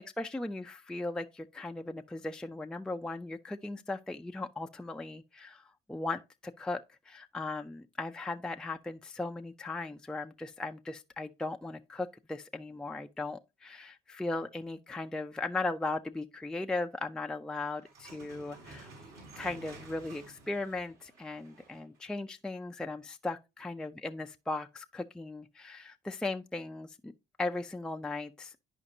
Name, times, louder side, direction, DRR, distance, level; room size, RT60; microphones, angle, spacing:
voice 1, 0.0-18.9 19.4-27.1 27.4-28.5, left 2 dB, 5° left, 0.4 m, -37 dB
sound 1, 17.8-22.0, right 2 dB, 65° right, 4.9 m, -52 dB
11.0 x 5.0 x 2.7 m
cardioid pair, 110°, 17 cm